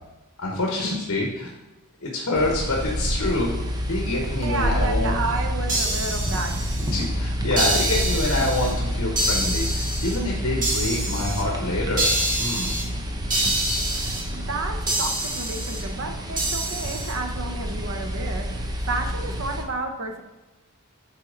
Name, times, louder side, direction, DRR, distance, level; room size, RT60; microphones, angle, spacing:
voice 1, 0.4-1.5 2.0-3.5 3.9-5.1 6.9-12.7, left 2 dB, 65° left, -1 dB, 1.2 m, -26 dB
sound 1, 2.3-19.6, equal, 20° right, 0.7 m, -28 dB
voice 2, 4.4-6.7 14.3-18.6 18.9-20.2, right 3 dB, 65° right, 4 dB, 0.8 m, -31 dB
sound 2, 5.7-7.0 7.6-8.7 9.2-10.2 10.6-11.4 12.0-12.8 13.3-14.2 14.9-15.8 16.4-17.1, right 1 dB, 40° right, 1.7 m, -26 dB
8.4 x 4.4 x 3.8 m, 1.1 s
head